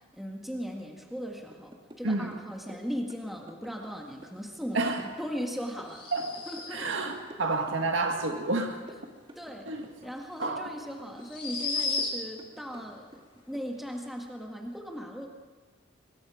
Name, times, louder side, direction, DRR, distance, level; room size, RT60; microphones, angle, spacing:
voice 1, 0.1-6.1 6.5-7.1 9.4-9.7 10.0-13.1 13.5-15.3, equal, ahead, 1 dB, 1.8 m, -38 dB
sound 1, 1.5-2.1 2.3-3.9 4.2-7.0 7.3-8.3 8.5-10.1 10.4-11.3 11.6-13.2 13.5-13.7, equal, 25° right, 1.9 m, -51 dB
sound 2, 5.9-7.0 10.0-10.1 11.2-12.5, left 4 dB, 25° left, 4.0 m, -33 dB
voice 2, 6.7-8.8 9.7-9.9 10.4-10.7, right 3 dB, 80° right, 3 dB, 1.9 m, -29 dB
24.0 x 22.0 x 5.0 m, 1.5 s
head